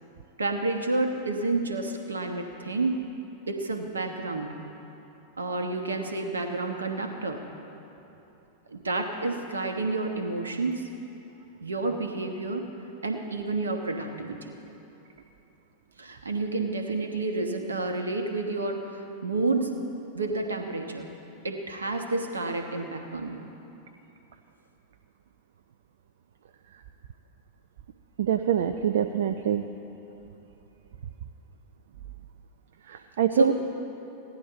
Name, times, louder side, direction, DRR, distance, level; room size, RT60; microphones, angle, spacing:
voice 1, 0.4-3.0 3.5-4.7 5.4-7.4 8.7-10.8 11.6-12.7 13.0-14.6 16.0-19.8 20.1-21.1 21.4-23.5 33.3-33.5, right 2 dB, 75° right, 5 dB, 1.0 m, -30 dB
voice 2, 28.2-29.7 32.9-33.5, right 9 dB, 60° right, 7 dB, 0.4 m, -25 dB
16.0 x 10.5 x 4.1 m, 3.0 s
figure-of-eight pair, 90°, 0 cm